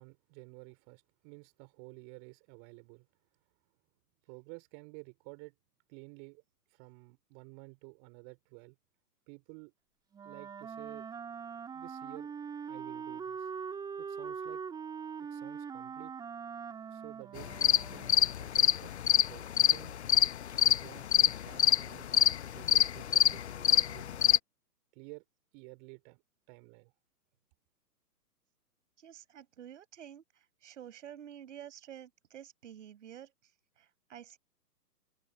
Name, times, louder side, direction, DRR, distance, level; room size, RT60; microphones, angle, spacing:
voice 1, 0.0-3.1 4.3-5.5 5.9-6.4 6.7-8.8 9.3-9.7 10.2-11.1 11.7-12.3 12.7-13.5 14.0-14.6 15.2-16.1 16.9-20.0 20.5-24.1 24.9-25.2 25.5-26.2 26.5-26.9, right 40 dB or more, 25° right, 3.5 m, -52 dB
Wind instrument woodwind instrument, 10.1-18.4, right 6 dB, 10° right, 2.6 m, -42 dB
sound 1, 17.4-24.4, left 10 dB, 45° left, 0.8 m, -26 dB
voice 2, 29.0-33.3 33.8-34.4, right 10 dB, 45° right, 5.2 m, -50 dB
figure-of-eight pair, 130°, 49 cm